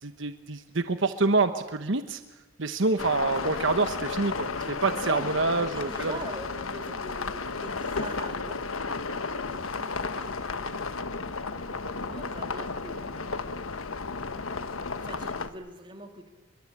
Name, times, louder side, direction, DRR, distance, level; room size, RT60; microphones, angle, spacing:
voice 1, 0.0-2.2 2.6-6.1, right 3 dB, 65° right, 9 dB, 1.1 m, -27 dB
sound 1, 3.0-15.5, left 4 dB, 80° left, 1.4 m, -33 dB
voice 2, 5.0-8.8 9.1-14.0 15.0-16.3, right 1 dB, 25° right, 4 dB, 3.0 m, -44 dB
26.0 x 23.0 x 8.6 m, 1.1 s
head